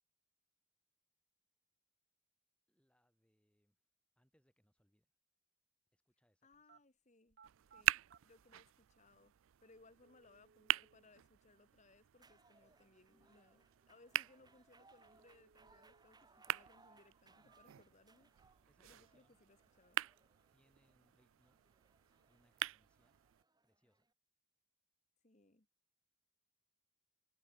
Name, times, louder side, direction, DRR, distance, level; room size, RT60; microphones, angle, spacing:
voice 1, 2.7-3.8 4.2-5.1 5.9-6.8 18.7-19.4 20.5-21.6 22.3-23.2 23.6-24.1, equal, 5° left, 4.7 m, -78 dB
voice 2, 6.4-7.4 7.7-9.3 9.6-18.3 18.8-20.0 25.2-25.7, left 2 dB, 35° left, 1.3 m, -67 dB
sound 1, 6.5-6.8 7.3-8.2 9.2-9.3 10.0-11.0 15.0-16.0 16.4-16.5 17.1-18.0 18.4-19.2 19.4-20.0, right 6 dB, 45° right, 0.7 m, -68 dB
sound 2, 7.4-23.4, right 13 dB, 65° right, 0.4 m, -44 dB
sound 3, 12.1-24.1, right 3 dB, 20° right, 2.9 m, -70 dB
head